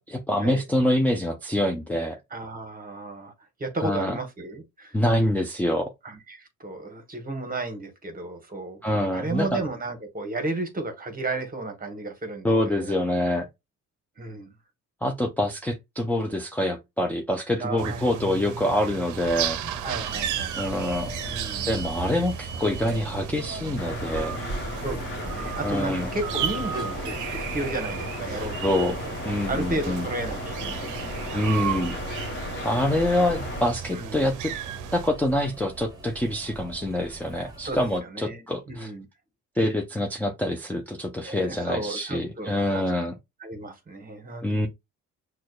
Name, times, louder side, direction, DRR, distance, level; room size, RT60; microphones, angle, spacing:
voice 1, 0.0-2.2 3.8-4.2 4.9-5.9 8.8-9.6 12.4-13.5 15.0-19.6 20.6-21.1 21.7-24.4 25.6-26.1 28.6-30.1 31.3-32.0 32.6-34.5 34.9-38.9 39.6-43.1 44.4-44.7, left 1 dB, 5° left, 0.4 m, -26 dB
voice 2, 2.3-3.3 3.6-5.0 6.0-13.0 13.3-13.4 14.2-14.5 17.6-18.2 19.8-20.9 21.2-21.7 24.8-29.1 29.5-31.4 33.9-34.3 37.3-39.1 41.2-42.9 43.4-44.6, right 2 dB, 30° right, 1.0 m, -34 dB
sound 1, 17.8-35.1, right 9 dB, 85° right, 0.5 m, -34 dB
sound 2, 19.1-38.0, right 2 dB, 15° right, 1.3 m, -41 dB
sound 3, 23.8-33.6, left 2 dB, 40° left, 1.0 m, -35 dB
6.0 x 2.2 x 2.3 m
cardioid pair, 90°, 30 cm